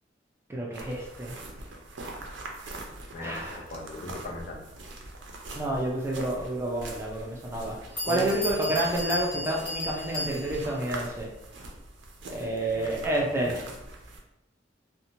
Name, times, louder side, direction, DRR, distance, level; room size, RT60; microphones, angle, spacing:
voice 1, 0.5-1.4 3.2-3.6 5.5-7.8 8.0-11.3 12.3-13.6, right 1 dB, 15° right, -3 dB, 0.4 m, -29 dB
sound 1, 0.7-14.2, right 2 dB, 75° right, 0.5 m, -43 dB
voice 2, 3.1-4.6 8.0-8.4 12.4-13.1 13.3-13.5, left 2 dB, 45° left, 0 dB, 0.5 m, -38 dB
Bell, 6.8-6.9 7.6-7.7 8.0-10.8, left 1 dB, 25° left, 1.0 m, -34 dB
2.9 x 2.1 x 2.6 m, 0.87 s
head